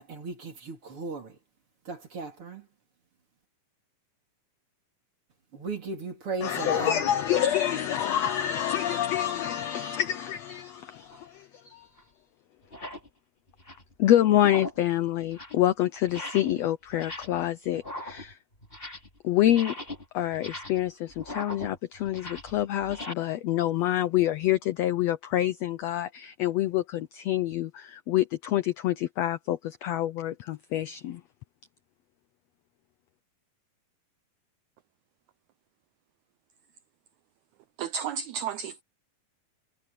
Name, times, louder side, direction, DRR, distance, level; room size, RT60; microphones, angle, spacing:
voice 1, 0.0-1.4 1.9-2.7 5.5-7.1, right 4 dB, 40° right, 4.0 m, -36 dB
voice 2, 6.4-11.9 14.0-18.4 19.2-19.7 20.1-31.2, left 12 dB, 80° left, 1.5 m, -27 dB
sound 1, 11.1-11.3 12.0-12.1 12.6-13.1 13.5-13.9 14.3-14.9 15.2-15.6 16.0-16.6 16.9-17.5 17.7-19.2 19.4-23.1, left 1 dB, 15° left, 3.3 m, -40 dB
voice 3, 37.8-38.8, right 7 dB, 75° right, 1.8 m, -32 dB
omnidirectional pair, 3.8 m